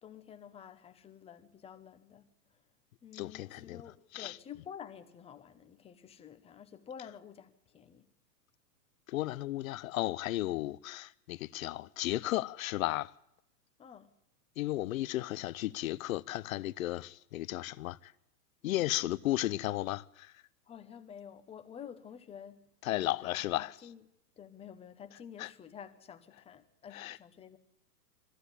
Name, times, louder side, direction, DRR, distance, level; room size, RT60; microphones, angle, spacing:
voice 1, 0.0-2.3 3.0-8.1 13.8-14.1 20.7-24.0 24.4-27.6, left 8 dB, 10° left, 0.9 m, -50 dB
voice 2, 3.1-3.8 4.1-4.4 9.1-13.1 14.6-18.1 18.6-20.3 22.8-23.7 25.4-25.5 26.9-27.2, left 16 dB, 60° left, 0.8 m, -34 dB
21.0 x 14.5 x 9.9 m
hypercardioid pair, 145°, 47 cm